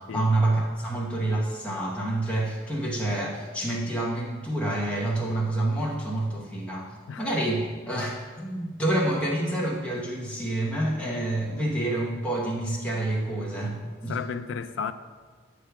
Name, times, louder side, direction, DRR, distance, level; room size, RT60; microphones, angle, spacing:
voice 1, 0.0-6.9 7.2-14.2, right 1 dB, 5° left, 0.9 m, -28 dB
voice 2, 14.1-14.9, left 6 dB, 75° left, 0.4 m, -33 dB
8.2 x 3.3 x 5.7 m
head